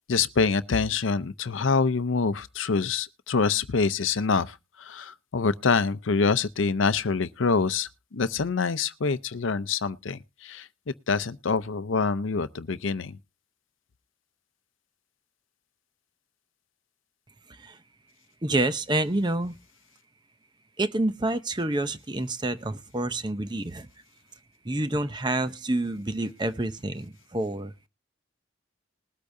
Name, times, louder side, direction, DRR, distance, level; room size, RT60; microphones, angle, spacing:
voice 1, 0.0-10.7 11.1-13.2, left 4 dB, 75° left, 0.6 m, -26 dB
voice 2, 18.4-19.6 20.8-23.9 24.6-27.9, right 2 dB, 20° right, 0.6 m, -28 dB
20.5 x 8.3 x 2.6 m
head